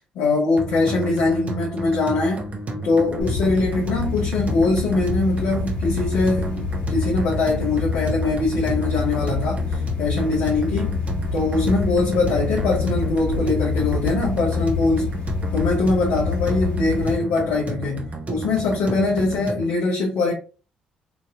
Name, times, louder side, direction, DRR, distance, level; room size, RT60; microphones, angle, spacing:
voice 1, 0.1-2.5 2.8-11.0 11.3-15.1 15.5-20.3, left 3 dB, 75° left, 0.7 m, -22 dB
sound 1, 0.6-19.8, right 2 dB, 40° right, 0.7 m, -32 dB
sound 2, 3.2-17.2, left 5 dB, 40° left, 1.1 m, -27 dB
3.0 x 2.6 x 2.4 m
hypercardioid pair, 50°, 3 cm